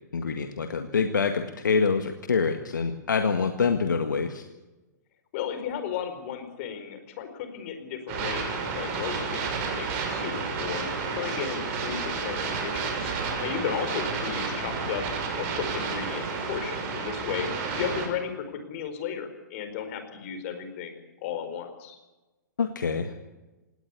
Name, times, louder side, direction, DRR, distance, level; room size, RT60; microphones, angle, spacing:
voice 1, 0.1-4.4 22.6-23.1, left 5 dB, 75° left, 7 dB, 1.7 m, -26 dB
voice 2, 5.3-10.8 11.1-15.0 15.4-17.5 17.8-22.0, left 8 dB, 45° left, 8 dB, 4.7 m, -34 dB
sound 1, 8.1-18.1, right 5 dB, 45° right, 6.4 m, -31 dB
18.5 x 18.5 x 8.4 m, 1.1 s
figure-of-eight pair, 115°, 10 cm